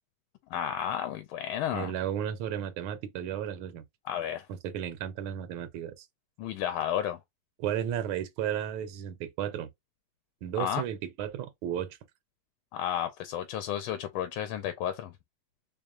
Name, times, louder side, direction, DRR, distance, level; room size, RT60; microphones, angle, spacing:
voice 1, 0.5-1.9 4.0-4.5 6.4-7.2 10.6-10.8 12.7-15.1, left 10 dB, 80° left, 1.4 m, -32 dB
voice 2, 1.7-3.8 4.5-6.1 7.6-9.7 10.4-12.0, right 10 dB, 90° right, 1.5 m, -34 dB
3.6 x 3.4 x 2.4 m
omnidirectional pair, 2.2 m